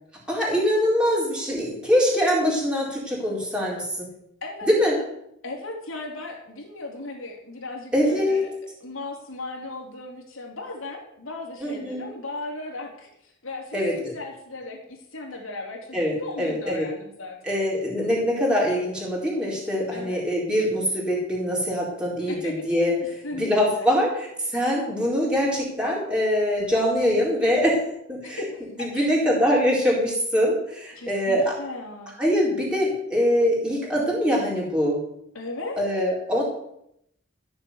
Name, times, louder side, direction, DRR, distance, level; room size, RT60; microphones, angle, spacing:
voice 1, 0.3-4.1 4.6-5.0 7.9-8.4 11.6-12.0 13.7-14.1 15.9-16.9 17.4-22.9 23.4-27.8 28.1-28.4 28.8-31.6 32.2-35.0 35.8-36.4, equal, 5° right, -4 dB, 4.2 m, -23 dB
voice 2, 5.4-8.5 8.8-17.6 19.9-20.2 22.3-22.6 23.2-23.5 23.8-23.9 28.2-29.1 30.9-32.1 35.3-35.8, left 2 dB, 80° left, 1 dB, 3.4 m, -37 dB
14.5 x 7.0 x 8.1 m, 0.76 s
head